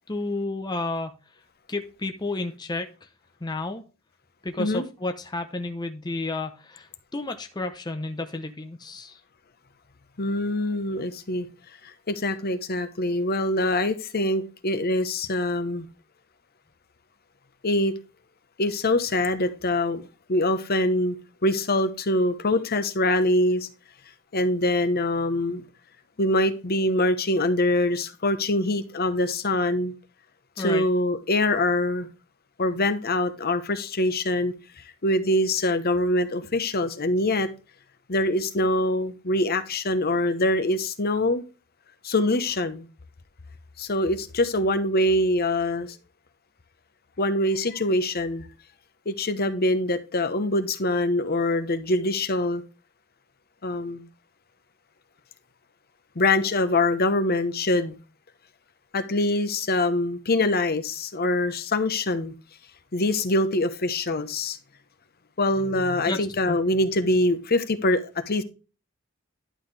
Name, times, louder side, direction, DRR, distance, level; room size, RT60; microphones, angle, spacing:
voice 1, 0.1-1.1 1.7-2.9 3.4-3.8 4.4-9.2 30.6-30.9 66.1-66.2 66.5-66.6, left 2 dB, 20° left, 6 dB, 0.7 m, -31 dB
voice 2, 10.2-11.5 11.8-15.9 17.6-17.9 18.6-21.2 21.4-23.7 24.3-25.7 26.2-29.9 30.6-32.1 32.6-37.5 38.1-41.4 42.0-42.9 43.8-46.0 47.2-48.5 49.1-52.6 53.6-54.1 56.1-58.0 58.9-62.3 62.9-64.6 65.4-68.4, left 1 dB, 50° left, 10 dB, 1.0 m, -24 dB
11.5 x 5.7 x 3.3 m, 0.32 s
head